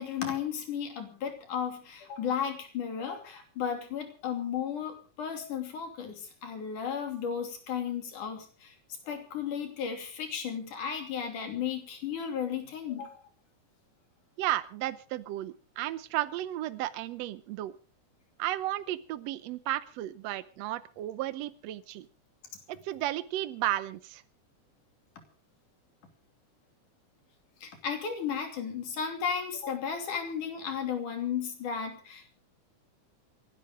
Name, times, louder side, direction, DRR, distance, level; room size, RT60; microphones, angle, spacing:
voice 1, 0.0-8.7 9.1-13.2 27.6-32.4, left 7 dB, 75° left, 5 dB, 4.3 m, -34 dB
voice 2, 14.4-17.7 18.4-22.1 22.7-24.2, right 14 dB, 70° right, 14 dB, 1.8 m, -33 dB
28.0 x 11.5 x 3.7 m, 0.36 s
omnidirectional pair, 3.6 m